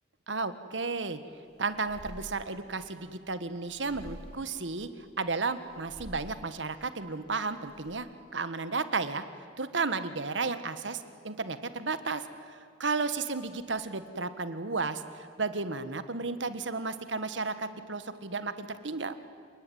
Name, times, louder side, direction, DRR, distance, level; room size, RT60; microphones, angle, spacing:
voice 1, 0.3-1.2 1.6-4.9 5.2-9.2 9.6-19.1, right 4 dB, 85° right, 11 dB, 1.5 m, -33 dB
sound 1, 1.0-7.9, equal, 60° right, 4.8 m, -51 dB
29.0 x 19.5 x 9.4 m, 2.3 s
head